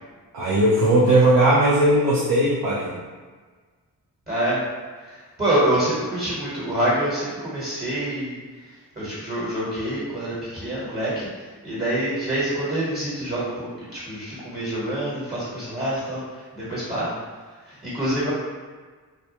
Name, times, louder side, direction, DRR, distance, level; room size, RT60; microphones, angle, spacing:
voice 1, 0.3-2.9, right 1 dB, 85° right, -7 dB, 0.6 m, -18 dB
voice 2, 4.3-4.6 5.4-8.4 9.0-11.3 11.6-16.2 16.5-17.1 17.6-18.3, right 1 dB, 25° right, -10 dB, 1.3 m, -26 dB
2.2 x 2.2 x 2.8 m, 1.5 s
cardioid pair, 55°, 36 cm